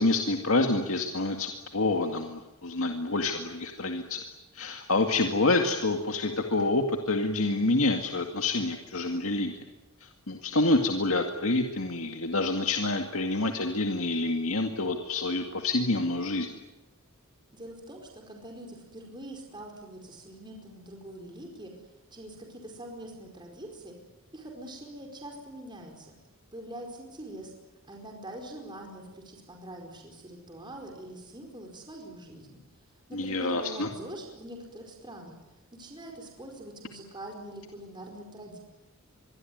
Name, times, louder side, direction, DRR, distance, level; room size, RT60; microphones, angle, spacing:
voice 1, 0.0-4.2 4.5-9.6 10.0-16.5 33.1-33.9, left 2 dB, 70° left, 4 dB, 2.1 m, -27 dB
voice 2, 17.5-21.7 22.1-23.9 24.3-26.1 26.5-27.5 27.9-32.6 33.1-35.3 35.7-38.6, right 1 dB, 20° right, 2 dB, 4.8 m, -44 dB
25.5 x 23.0 x 9.5 m, 1.0 s
head